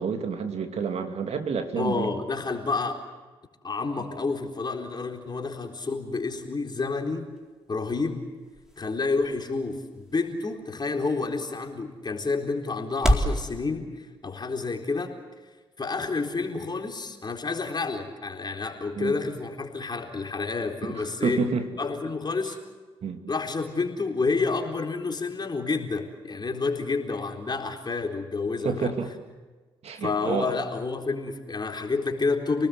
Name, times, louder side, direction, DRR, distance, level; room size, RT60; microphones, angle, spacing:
voice 1, 0.0-2.1 19.0-19.2 21.2-21.6 23.0-23.2 28.6-29.1 29.8-30.5, right 5 dB, 55° right, 5 dB, 2.9 m, -28 dB
voice 2, 1.8-3.0 3.6-7.3 7.7-8.2 8.8-13.9 14.2-15.1 15.8-21.4 21.8-22.6 23.3-28.9 30.0-32.7, left 4 dB, 35° left, 3 dB, 4.1 m, -29 dB
sound 1, 7.1-13.4, equal, 5° right, 4.2 m, -32 dB
29.0 x 19.0 x 8.0 m, 1.3 s
hypercardioid pair, 40°, 13 cm